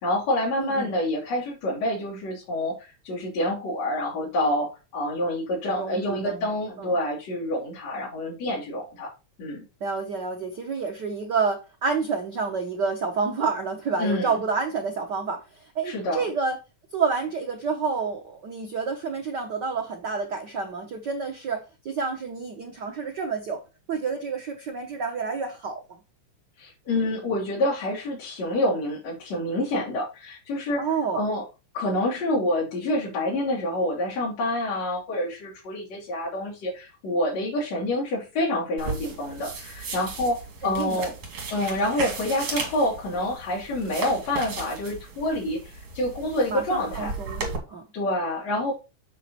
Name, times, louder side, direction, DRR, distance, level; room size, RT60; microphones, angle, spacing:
voice 1, 0.0-9.1 9.4-9.7 14.0-14.3 15.8-16.2 26.6-30.8 31.1-31.4 31.7-41.1 41.5-47.1 47.9-48.7, left 1 dB, 60° left, 4.3 m, -27 dB
voice 2, 0.6-0.9 5.7-6.4 6.8-6.9 9.8-16.6 16.9-23.6 23.9-25.8 30.8-31.3 40.6-41.1 46.5-47.8, right 5 dB, 85° right, 0.9 m, -29 dB
sound 1, 38.8-47.6, right 4 dB, 50° right, 3.2 m, -36 dB
7.6 x 6.0 x 4.1 m
omnidirectional pair, 3.5 m